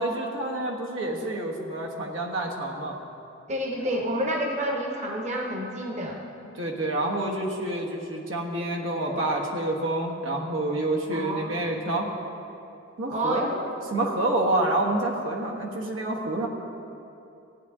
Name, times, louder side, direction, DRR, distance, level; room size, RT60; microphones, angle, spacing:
voice 1, 0.0-3.0 6.5-12.1 13.0-13.6 13.9-16.5, right 1 dB, 85° right, -1 dB, 1.3 m, -28 dB
voice 2, 3.5-6.2 11.1-11.7 13.1-13.5, right 1 dB, 35° right, 0 dB, 1.0 m, -29 dB
15.5 x 9.5 x 3.6 m, 2.8 s
head